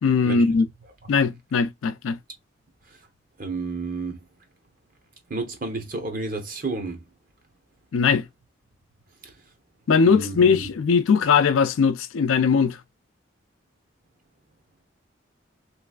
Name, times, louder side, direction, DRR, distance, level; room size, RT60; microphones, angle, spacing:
voice 1, 0.0-0.7 1.1-2.2 7.9-8.3 9.9-12.8, left 5 dB, 90° left, 0.4 m, -20 dB
voice 2, 3.4-4.2 5.3-7.0 9.2-9.3 10.1-10.6, right 3 dB, 45° right, 0.9 m, -31 dB
3.2 x 3.1 x 2.3 m
head